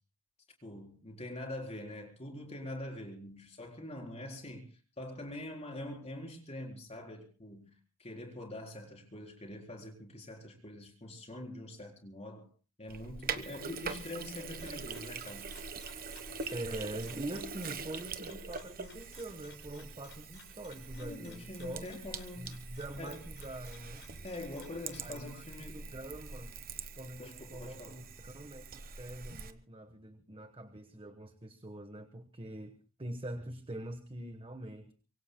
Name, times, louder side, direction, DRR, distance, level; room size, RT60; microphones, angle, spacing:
voice 1, 0.6-4.7 5.0-7.7 8.0-12.5 12.8-15.5 20.9-22.4 23.0-23.3 24.2-25.9 27.2-28.0, left 1 dB, 30° left, 4.2 m, -44 dB
Sink (filling or washing), 12.9-29.5, right 5 dB, 45° right, 1.2 m, -44 dB
sound 1, 14.3-25.2, left 5 dB, 55° left, 6.6 m, -60 dB
voice 2, 16.5-22.0 22.4-24.1 25.0-25.4 25.7-26.6 27.0-34.9, right 1 dB, 25° right, 1.1 m, -44 dB
24.5 x 23.5 x 2.2 m
head